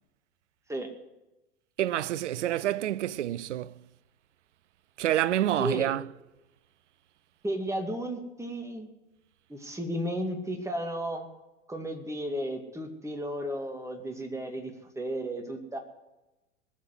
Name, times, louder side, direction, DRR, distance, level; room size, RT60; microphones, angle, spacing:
voice 1, 1.8-3.7 5.0-6.1, right 12 dB, 75° right, 0.6 m, -28 dB
voice 2, 7.4-8.9 9.5-11.3 11.7-15.8, right 1 dB, 10° right, 2.5 m, -33 dB
20.5 x 7.4 x 9.6 m
figure-of-eight pair, 85°, 36 cm